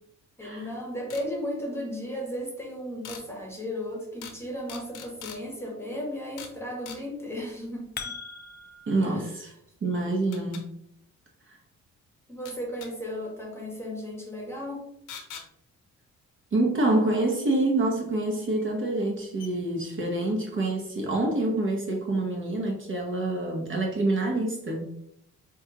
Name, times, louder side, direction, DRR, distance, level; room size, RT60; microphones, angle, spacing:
voice 1, 0.4-7.9 9.0-9.3 12.3-14.9, equal, 10° left, 0 dB, 1.0 m, -35 dB
sound 1, 1.1-1.3 3.0-3.2 4.2-4.4 4.7-5.4 6.4-6.6 6.9-7.0 9.3-9.4 10.3-10.6 12.5-12.9 15.1-15.5 17.5-17.6 18.6-18.7 19.0-19.1 19.4-19.5, left 7 dB, 90° left, 0.7 m, -42 dB
sound 2, 7.5-9.0, left 5 dB, 35° left, 0.5 m, -39 dB
voice 2, 8.9-9.5 9.8-10.7 11.5-11.6 16.5-24.9, right 2 dB, 40° right, 0 dB, 0.9 m, -27 dB
5.0 x 2.3 x 2.9 m, 0.73 s
cardioid pair, 90°, 30 cm